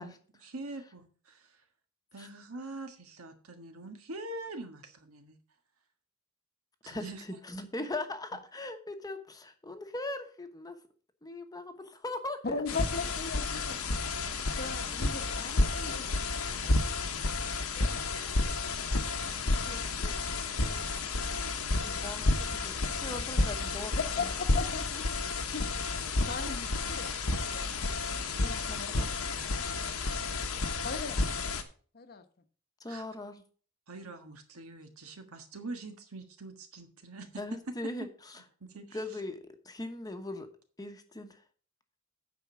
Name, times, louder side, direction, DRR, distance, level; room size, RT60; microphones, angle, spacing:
voice 1, 0.0-1.6 2.1-5.4 6.8-7.2 32.9-33.1 33.9-37.4 38.6-39.2, right 2 dB, 75° right, 6 dB, 1.5 m, -44 dB
voice 2, 6.9-10.8 11.2-12.6 14.9-15.0 15.9-16.0 19.4-20.1 20.6-20.9 21.7-24.3 28.4-29.1 32.8-33.4 37.4-38.1 38.9-40.5 40.8-41.4, left 2 dB, 20° left, 7 dB, 1.0 m, -40 dB
voice 3, 12.4-14.0 14.5-16.1 17.6-18.5 24.2-24.3 24.5-25.7 26.3-27.7 28.4-28.9 30.8-31.2 31.9-32.2, left 4 dB, 45° left, 8 dB, 1.0 m, -39 dB
sound 1, 12.7-31.6, left 3 dB, 80° left, 1.2 m, -31 dB
9.0 x 5.2 x 6.1 m, 0.42 s
head